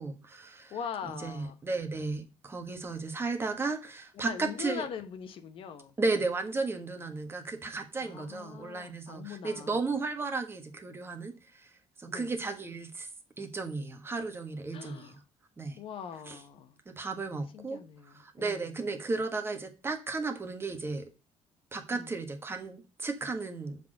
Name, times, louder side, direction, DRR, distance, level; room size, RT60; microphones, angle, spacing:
voice 1, 0.0-0.7 1.0-4.9 6.0-11.7 12.0-13.1 13.4-15.2 15.6-15.8 16.3-16.4 16.9-17.8 18.1-21.1 21.7-23.8, right 3 dB, 20° right, 1.4 m, -34 dB
voice 2, 0.7-1.5 4.1-5.9 8.0-9.9 12.1-12.3 14.7-15.2 15.8-16.8 17.3-18.7 21.9-22.1, left 7 dB, 60° left, 1.1 m, -42 dB
7.0 x 4.1 x 6.5 m
cardioid pair, 115°, 11 cm